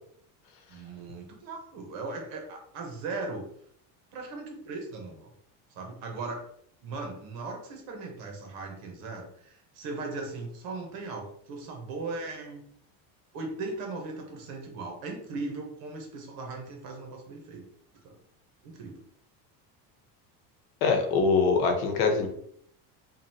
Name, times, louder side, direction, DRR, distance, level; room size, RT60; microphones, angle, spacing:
voice 1, 0.7-3.5 4.1-5.3 5.7-6.4 6.8-12.6 13.3-17.6 18.0-18.2 18.6-19.0, right 3 dB, 50° right, 2 dB, 1.1 m, -38 dB
voice 2, 20.8-22.3, left 4 dB, 80° left, 4 dB, 1.0 m, -23 dB
5.2 x 2.5 x 2.8 m, 0.67 s
cardioid pair, 175°, 41 cm